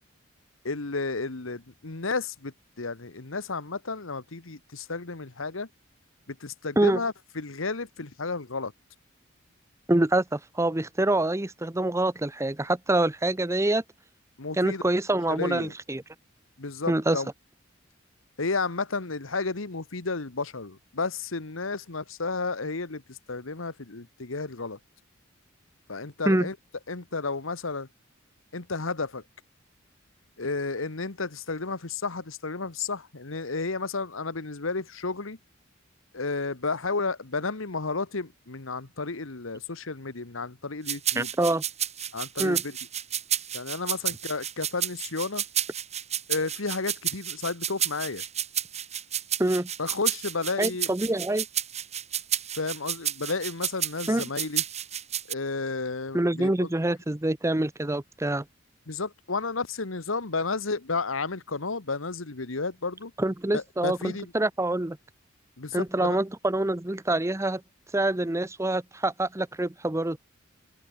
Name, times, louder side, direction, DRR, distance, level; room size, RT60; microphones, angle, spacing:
voice 1, 0.6-5.7 6.3-8.7 14.4-14.8 15.3-15.7 16.6-17.3 18.4-24.8 25.9-26.5 26.9-27.9 28.5-29.2 30.4-35.4 36.1-41.3 42.1-42.8 43.5-45.4 46.3-48.2 49.8-50.9 52.5-54.6 55.3-56.7 58.9-63.1 63.5-64.3 65.6-66.2, left 3 dB, 90° left, 1.5 m, -32 dB
voice 2, 9.9-13.8 14.6-16.0 16.9-17.2 26.3-26.5 41.2-41.6 42.4-42.6 49.4-49.7 50.6-51.4 54.1-54.3 56.1-58.4 63.2-65.0 65.7-67.6 67.9-70.2, right 1 dB, 15° right, 0.7 m, -26 dB
sound 1, 40.9-55.3, right 10 dB, 35° right, 3.1 m, -31 dB
head